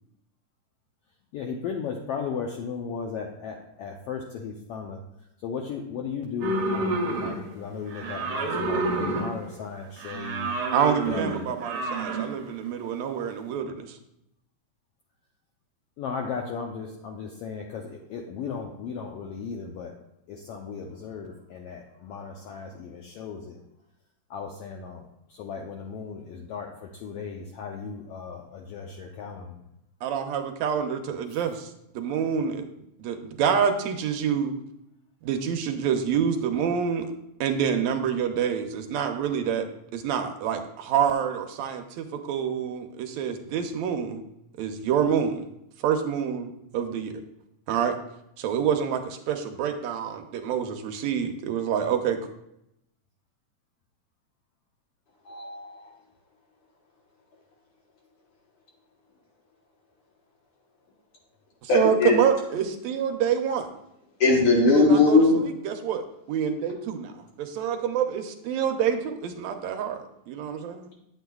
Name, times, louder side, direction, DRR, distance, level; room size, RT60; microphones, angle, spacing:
voice 1, 1.3-5.0 5.4-10.5 11.1-11.6 16.0-19.9 20.3-23.6 24.3-25.0 25.3-29.6, left 6 dB, 90° left, 1 dB, 1.3 m, -36 dB
sound 1, 6.4-7.6 7.9-9.5 10.0-12.4, right 2 dB, 60° right, 1.5 m, -29 dB
voice 2, 10.7-14.0 30.0-32.6 33.0-34.5 35.2-37.1 37.4-39.7 39.9-44.2 44.6-45.5 45.8-47.1 47.7-48.0 48.4-52.2 61.6-63.7 64.8-70.9, right 8 dB, 75° right, 6 dB, 1.8 m, -27 dB
voice 3, 55.3-55.8 61.7-62.2 64.2-65.4, left 3 dB, 55° left, -1 dB, 1.9 m, -19 dB
8.2 x 8.1 x 2.3 m, 0.81 s
omnidirectional pair, 3.4 m